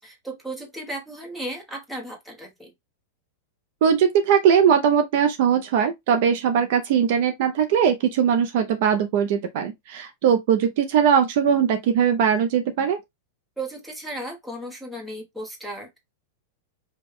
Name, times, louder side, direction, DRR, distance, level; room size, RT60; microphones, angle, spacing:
voice 1, 0.0-2.7 13.6-16.0, right 1 dB, ahead, 1.0 m, -35 dB
voice 2, 3.8-13.0, right 8 dB, 45° right, 0.5 m, -20 dB
5.1 x 2.2 x 3.5 m
supercardioid pair, 180°, 0 cm